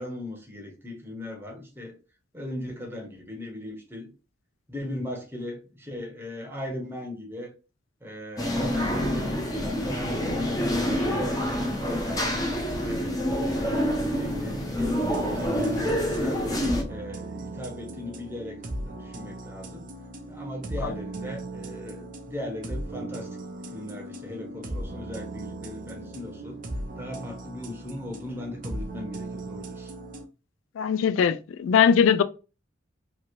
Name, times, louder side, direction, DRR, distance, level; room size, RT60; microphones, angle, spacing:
voice 1, 0.0-2.0 2.3-4.1 4.7-7.5 8.0-12.4 12.8-16.5 16.9-18.6 18.8-19.9 20.3-23.3 23.7-26.6 27.0-29.9, left 1 dB, 10° right, 0.9 m, -38 dB
sound 1, 8.4-16.8, equal, 20° left, 0.7 m, -27 dB
sound 2, 14.8-30.2, right 1 dB, 45° right, 0.6 m, -38 dB
voice 2, 30.8-32.2, left 7 dB, 75° left, 0.3 m, -21 dB
3.0 x 2.8 x 2.6 m
head